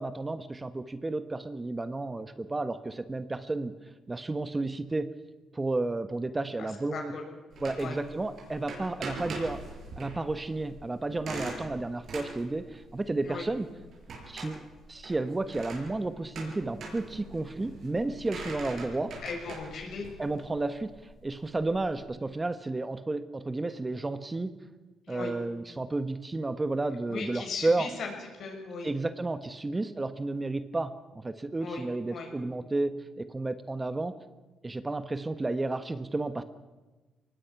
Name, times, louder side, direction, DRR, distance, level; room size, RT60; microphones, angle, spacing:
voice 1, 0.0-3.7 4.1-5.1 5.5-7.1 7.6-9.6 10.0-13.7 14.3-19.1 20.2-20.9 21.2-24.5 25.1-27.9 28.8-34.1 34.6-36.4, right 2 dB, 20° right, 11 dB, 1.1 m, -32 dB
voice 2, 6.6-7.2 7.8-8.0 13.2-13.4 18.3-18.5 19.2-20.1 25.1-25.3 27.1-28.9 31.6-32.3, left 4 dB, 60° left, 2 dB, 6.4 m, -38 dB
sound 1, 7.5-22.0, right 2 dB, 60° right, 7.0 m, -43 dB
23.5 x 19.5 x 5.9 m, 1.2 s
cardioid pair, 90°, 0 cm